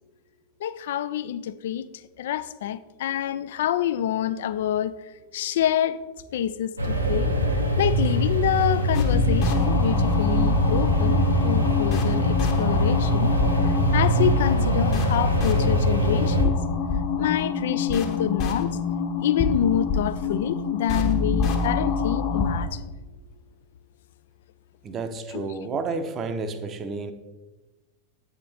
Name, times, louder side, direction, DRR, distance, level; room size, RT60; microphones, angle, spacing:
voice 1, 0.6-1.9 2.2-6.0 6.3-7.3 7.8-13.3 13.6-16.5 17.2-18.8 19.2-22.9 25.3-25.5, left 10 dB, 55° left, 0.3 m, -27 dB
sound 1, 6.8-16.4, equal, 85° right, 0.9 m, -23 dB
sound 2, 8.9-22.6, left 5 dB, 40° left, 1.0 m, -26 dB
voice 2, 24.8-27.1, right 4 dB, 30° right, 0.7 m, -31 dB
8.3 x 5.1 x 4.1 m
figure-of-eight pair, 90°, 0 cm